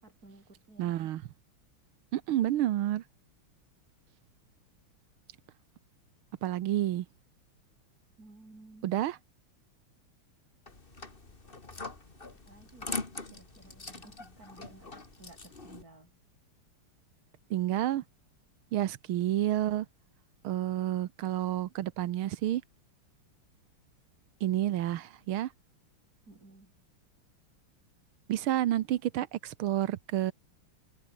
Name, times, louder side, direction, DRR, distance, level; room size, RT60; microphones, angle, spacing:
voice 1, 0.0-1.0 8.2-9.0 12.5-16.1 26.3-26.7, right 2 dB, 40° right, 5.9 m, -55 dB
voice 2, 0.8-1.2 2.1-3.0 6.4-7.0 8.8-9.2 17.5-18.0 18.7-19.9 20.4-22.6 24.4-25.5 28.3-30.3, right 13 dB, 75° right, 1.7 m, -29 dB
sound 1, 10.7-15.8, left 3 dB, 25° left, 2.5 m, -42 dB
omnidirectional pair, 2.4 m